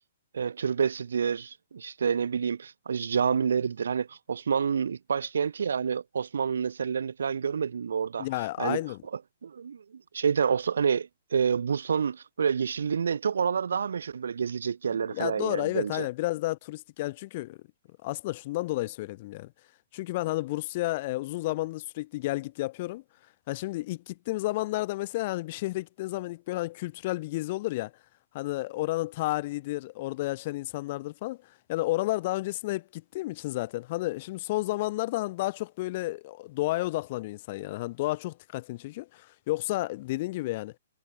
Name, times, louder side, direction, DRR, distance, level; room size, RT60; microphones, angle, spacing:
voice 1, 0.3-8.3 8.6-8.8 9.4-16.1, right 6 dB, 80° right, 3.9 m, -28 dB
voice 2, 8.2-9.0 15.1-17.6 18.0-19.5 19.9-23.0 23.5-27.9 28.3-31.4 31.7-40.7, left 19 dB, 45° left, 2.4 m, -31 dB
hypercardioid pair, 135°, 0 cm